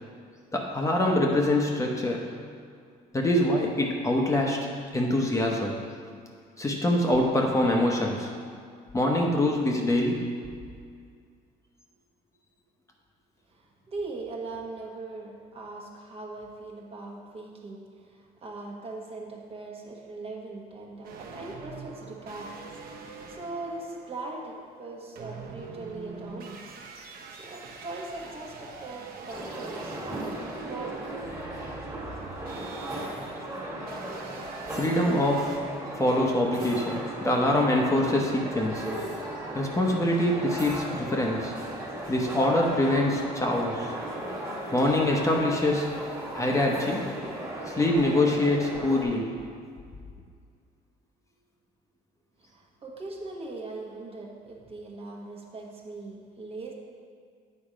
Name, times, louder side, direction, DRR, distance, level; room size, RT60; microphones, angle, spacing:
voice 1, 0.5-2.2 3.1-4.7 4.9-5.8 6.6-8.3 8.9-10.2 34.7-35.6 36.0-38.9 39.5-41.5 42.1-43.9 44.7-45.9 46.3-47.1 47.7-49.4, left 1 dB, 20° left, -1 dB, 0.9 m, -24 dB
voice 2, 13.5-26.6 27.3-31.3 52.4-56.7, right 3 dB, 35° right, -1 dB, 1.3 m, -40 dB
sound 1, 21.0-35.6, right 4 dB, 60° right, 0.9 m, -44 dB
sound 2, 29.3-49.0, right 1 dB, 15° right, 1.8 m, -36 dB
8.7 x 4.3 x 5.0 m, 2.2 s
cardioid pair, 110°, 17 cm